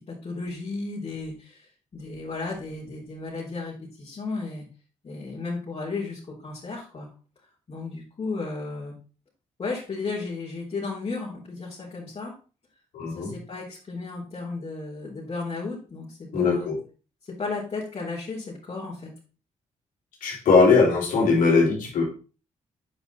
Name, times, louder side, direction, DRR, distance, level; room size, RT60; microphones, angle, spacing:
voice 1, 0.1-4.7 5.0-7.1 7.7-9.0 9.6-12.3 13.1-16.7 17.4-19.1, left 3 dB, 45° left, -6 dB, 4.0 m, -34 dB
voice 2, 12.9-13.3 16.3-16.8 20.2-22.0, left 4 dB, 80° left, -2 dB, 3.7 m, -20 dB
8.9 x 5.4 x 4.2 m, 0.36 s
supercardioid pair, 60°, 14 cm